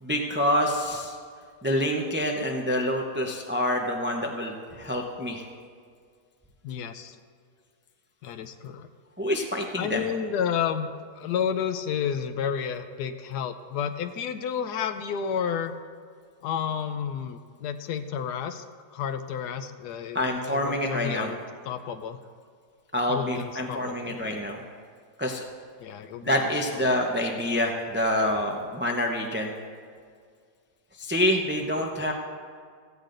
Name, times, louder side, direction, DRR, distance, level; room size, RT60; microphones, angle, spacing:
voice 1, 0.0-1.2 1.6-5.5 9.2-10.1 20.1-21.3 22.9-24.6 25.2-25.4 26.2-29.5 31.0-32.1, left 1 dB, 15° right, 1 dB, 0.5 m, -27 dB
voice 2, 6.6-7.2 8.2-8.9 9.8-10.9 11.2-15.7 16.4-18.6 18.9-20.2 20.4-21.4 21.6-22.2 23.1-24.2 25.8-26.5, left 8 dB, 85° left, 9 dB, 1.2 m, -31 dB
16.0 x 14.5 x 2.6 m, 2.1 s
omnidirectional pair, 1.7 m